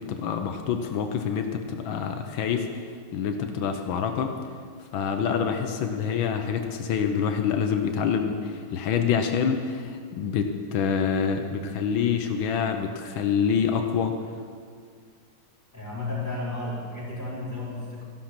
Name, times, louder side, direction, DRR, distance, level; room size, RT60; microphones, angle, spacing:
voice 1, 0.0-2.8 3.1-4.3 4.9-14.2, left 7 dB, 85° left, 6 dB, 1.6 m, -26 dB
voice 2, 15.7-18.0, left 2 dB, 10° left, -8 dB, 4.1 m, -33 dB
13.0 x 11.5 x 5.9 m, 2.1 s
omnidirectional pair, 2.1 m